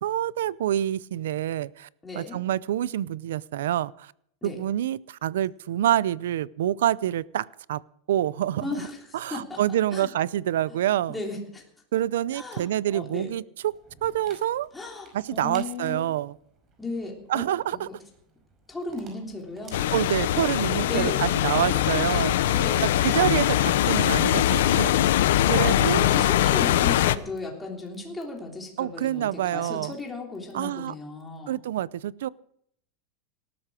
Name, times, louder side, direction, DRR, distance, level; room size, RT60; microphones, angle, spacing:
voice 1, 0.0-1.9 2.1-4.1 4.4-7.8 8.1-8.9 9.1-11.2 11.9-13.7 14.0-14.7 15.1-16.4 17.3-17.9 19.9-22.4 22.8-24.9 25.5-26.1 28.8-30.0 30.5-30.9 31.5-32.3, right 12 dB, 90° right, 22 dB, 0.5 m, -27 dB
voice 2, 2.0-2.4 4.4-4.6 8.6-9.0 9.3-9.6 9.9-10.1 11.1-11.6 12.3-13.3 14.7-16.0 16.8-17.4 17.7-17.9 18.7-19.8 20.8-21.3 21.6-22.9 25.6-31.6, left 3 dB, 10° left, 0 dB, 3.4 m, -35 dB
Dog, 13.7-26.6, right 4 dB, 25° right, 5.2 m, -53 dB
sound 1, 19.7-27.1, left 12 dB, 80° left, 0.8 m, -22 dB
18.5 x 13.0 x 4.9 m, 0.69 s
supercardioid pair, 160°, 0 cm